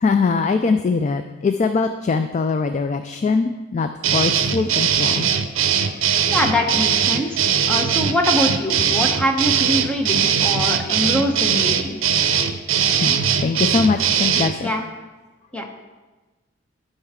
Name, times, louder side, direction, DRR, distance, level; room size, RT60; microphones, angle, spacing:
voice 1, 0.0-5.3 12.3-14.7, left 4 dB, 35° left, 8 dB, 0.3 m, -22 dB
sound 1, 4.0-14.5, right 8 dB, 80° right, 0.6 m, -20 dB
voice 2, 6.3-12.0 14.6-14.9 15.5-15.7, left 1 dB, 5° left, 1 dB, 0.9 m, -23 dB
12.0 x 5.5 x 3.7 m, 1.2 s
head